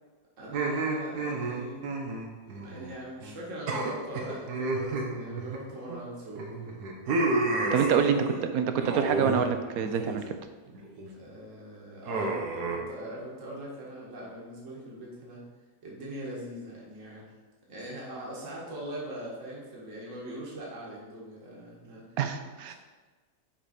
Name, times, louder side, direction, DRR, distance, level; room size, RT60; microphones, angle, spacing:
voice 1, 0.4-1.8 2.4-6.8 7.6-8.7 11.1-15.4 15.8-17.3 17.7-22.2 22.7-22.8, right 1 dB, 55° right, -4 dB, 1.7 m, -41 dB
sound 1, 0.5-3.0 3.2-3.4 3.7-6.0 6.4-8.4 8.8-9.4 9.7-10.2 10.7-11.1 12.1-12.8, right 2 dB, 90° right, 1.4 m, -31 dB
voice 2, 7.7-8.2 8.5-10.2 22.2-22.7, right 7 dB, 75° right, 8 dB, 1.0 m, -26 dB
6.0 x 4.8 x 4.3 m, 1.3 s
omnidirectional pair, 1.7 m